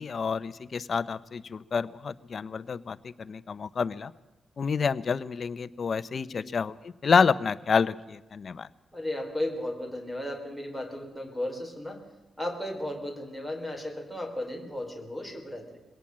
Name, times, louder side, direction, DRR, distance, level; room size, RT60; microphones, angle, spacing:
voice 1, 0.0-4.1 4.6-8.7, left 5 dB, 50° left, 15 dB, 0.7 m, -28 dB
voice 2, 6.1-6.5 8.9-12.1 12.4-15.8, left 1 dB, ahead, 5 dB, 3.6 m, -35 dB
22.0 x 17.5 x 7.5 m, 1.0 s
cardioid pair, 115°, 0 cm